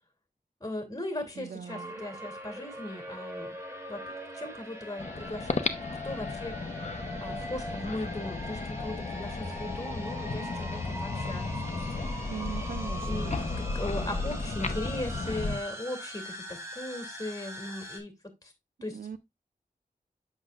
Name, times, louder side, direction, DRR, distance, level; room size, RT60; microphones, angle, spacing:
voice 1, 0.6-3.6 3.9-4.0 4.3-5.8 6.0-6.8 7.2-12.3 13.1-18.1 18.4-18.5 18.8-19.0, left 1 dB, 25° left, 2.6 m, -38 dB
voice 2, 1.4-2.0 12.3-13.6 18.9-19.2, right 7 dB, 70° right, 0.4 m, -40 dB
sound 1, 1.7-18.0, equal, 20° right, 2.2 m, -42 dB
sound 2, 5.0-15.6, left 3 dB, 50° left, 0.8 m, -34 dB
8.0 x 6.4 x 2.4 m
wide cardioid pair, 70°, 15 cm